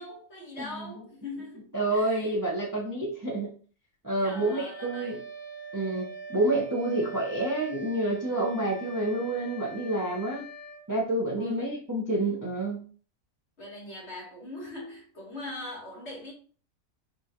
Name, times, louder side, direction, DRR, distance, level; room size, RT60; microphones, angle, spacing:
voice 1, 0.0-2.3 4.2-5.2 11.4-11.7 13.6-16.3, left 2 dB, 50° left, 1.8 m, -41 dB
voice 2, 0.6-0.9 1.7-3.5 4.0-5.2 5.7-10.5 10.9-12.8, right 2 dB, 15° right, 0.8 m, -28 dB
Wind instrument woodwind instrument, 4.3-10.9, right 2 dB, 75° left, 1.3 m, -43 dB
5.3 x 2.5 x 2.9 m
omnidirectional pair, 1.5 m